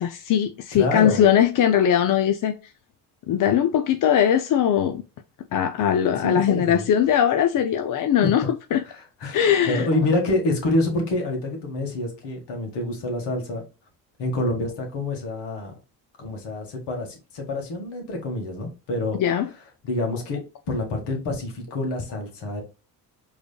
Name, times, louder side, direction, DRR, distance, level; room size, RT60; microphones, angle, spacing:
voice 1, 0.0-2.6 3.3-5.0 5.5-8.4 8.7-8.8 9.3-9.9 19.2-19.5, left 9 dB, 45° left, 0.6 m, -20 dB
voice 2, 0.7-1.2 6.2-6.9 8.8-13.6 14.2-15.7 16.2-19.2 19.8-20.4 20.7-22.6, left 2 dB, 60° left, 1.9 m, -27 dB
4.9 x 3.3 x 2.2 m
hypercardioid pair, 60°, 46 cm